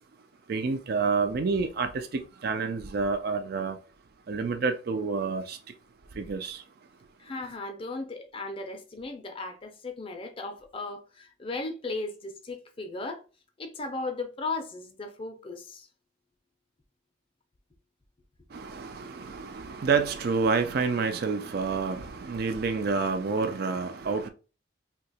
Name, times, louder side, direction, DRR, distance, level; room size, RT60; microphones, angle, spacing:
voice 1, 0.5-3.8 4.3-5.6 6.2-6.6 18.5-24.3, right 4 dB, 55° right, 0.4 m, -28 dB
voice 2, 7.2-13.2 13.6-15.9, left 3 dB, 30° left, 0.5 m, -36 dB
2.8 x 2.3 x 4.0 m
head